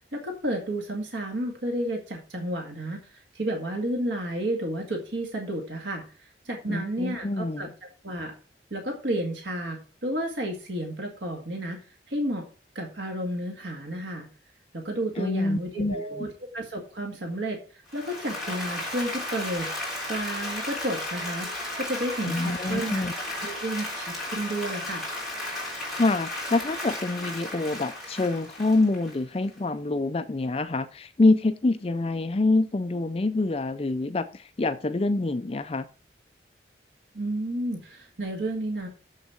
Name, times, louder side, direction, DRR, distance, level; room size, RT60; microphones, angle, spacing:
voice 1, 0.1-7.7 8.0-8.3 8.7-11.8 12.1-12.5 12.8-14.3 14.7-21.5 21.8-25.1 37.1-38.9, right 1 dB, 80° right, 2.0 m, -32 dB
voice 2, 6.7-7.7 15.2-16.3 22.2-23.1 26.0-35.9, left 2 dB, 30° left, 0.4 m, -26 dB
Applause, 17.9-29.6, left 1 dB, ahead, 3.9 m, -34 dB
7.3 x 6.5 x 5.8 m
head